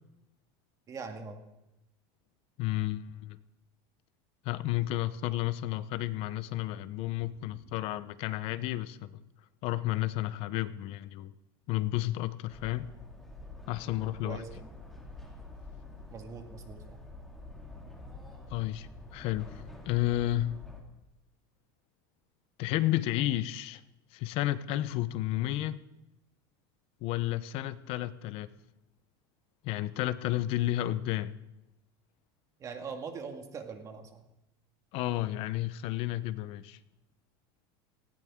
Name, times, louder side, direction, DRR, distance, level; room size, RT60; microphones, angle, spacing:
voice 1, 0.9-1.4 7.5-7.6 14.2-14.7 16.1-17.0 32.6-34.2, right 5 dB, 25° right, 5 dB, 1.8 m, -42 dB
voice 2, 2.6-3.4 4.4-9.2 9.6-11.3 11.7-12.9 13.7-14.4 18.5-20.6 22.6-23.8 24.1-25.8 27.0-28.5 29.6-31.4 34.9-36.8, left 15 dB, 50° left, 15 dB, 0.8 m, -32 dB
sound 1, 12.5-20.8, left 2 dB, ahead, 2.4 m, -47 dB
19.0 x 16.0 x 3.7 m, 0.92 s
supercardioid pair, 150°, 13 cm